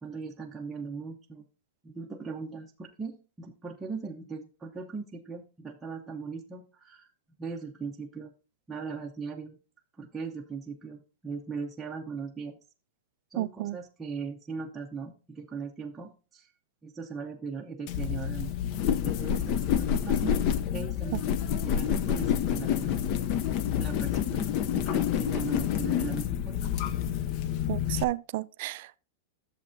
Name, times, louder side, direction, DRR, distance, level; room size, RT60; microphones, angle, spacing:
voice 1, 0.0-1.4 1.8-7.1 7.4-8.3 8.7-9.6 10.0-12.6 13.3-16.5 16.8-18.5 18.9-20.4 20.7-21.3 21.6-23.0 23.6-24.5 24.7-26.7, right 5 dB, 10° right, 0.6 m, -39 dB
voice 2, 13.4-13.8 21.1-21.2 27.7-29.0, right 17 dB, 50° right, 0.3 m, -32 dB
sound 1, 17.9-28.0, left 9 dB, 35° left, 0.5 m, -28 dB
11.0 x 7.0 x 2.6 m
supercardioid pair, 165°, 0 cm